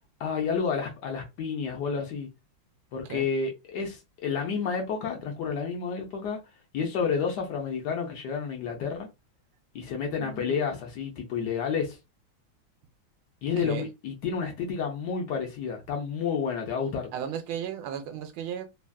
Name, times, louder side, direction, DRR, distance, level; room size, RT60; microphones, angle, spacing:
voice 1, 0.2-2.3 2.9-6.4 6.7-9.1 9.7-12.0 13.4-17.1, left 6 dB, 70° left, 1.1 m, -30 dB
voice 2, 10.2-10.7 13.6-13.9 17.1-18.7, right 8 dB, 80° right, 1.3 m, -35 dB
3.4 x 2.3 x 2.2 m
omnidirectional pair, 2.1 m